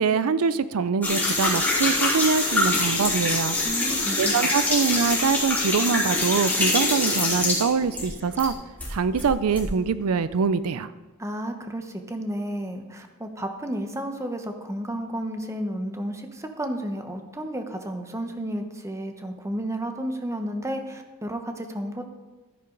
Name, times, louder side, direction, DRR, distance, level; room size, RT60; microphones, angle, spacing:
voice 1, 0.0-3.6 4.2-8.5 8.9-10.9, right 5 dB, 70° right, 15 dB, 0.4 m, -24 dB
sound 1, 1.0-8.5 8.8-9.7, left 2 dB, 10° left, 3.6 m, -24 dB
voice 2, 3.6-4.5 11.2-22.0, right 1 dB, 15° right, 5 dB, 1.0 m, -32 dB
12.5 x 10.5 x 3.9 m, 1.2 s
head